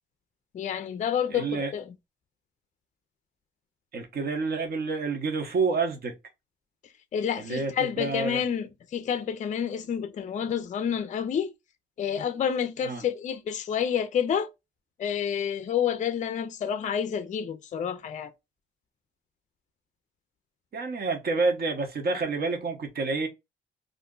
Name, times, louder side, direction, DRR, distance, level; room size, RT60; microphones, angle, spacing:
voice 1, 0.5-1.8 7.1-11.5 12.0-14.5 15.0-18.3, left 8 dB, 40° left, 0.4 m, -29 dB
voice 2, 1.3-1.7 3.9-6.1 7.4-8.4 12.8-13.0 20.7-23.3, right 4 dB, 50° right, 1.0 m, -28 dB
2.5 x 2.1 x 3.6 m
cardioid pair, 90°, 20 cm